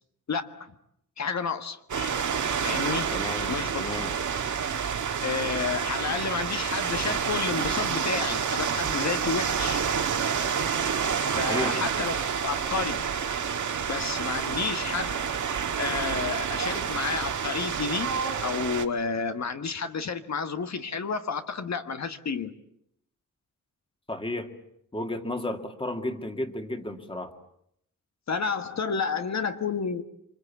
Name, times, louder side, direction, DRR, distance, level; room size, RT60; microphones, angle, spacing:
voice 1, 0.3-0.7 1.2-2.2 2.6-3.1 3.5-3.8 5.2-9.8 11.4-12.1 12.4-13.1 13.9-15.2 15.8-18.1 18.4-22.5 28.3-30.0, left 5 dB, 60° left, 8 dB, 1.5 m, -30 dB
sound 1, 1.9-18.8, right 7 dB, 65° right, 2.0 m, -29 dB
voice 2, 3.1-4.2 11.4-11.8 24.1-24.5 24.9-27.3, left 1 dB, 15° left, 6 dB, 2.1 m, -33 dB
27.0 x 26.0 x 8.4 m, 0.74 s
wide cardioid pair, 165°, 31 cm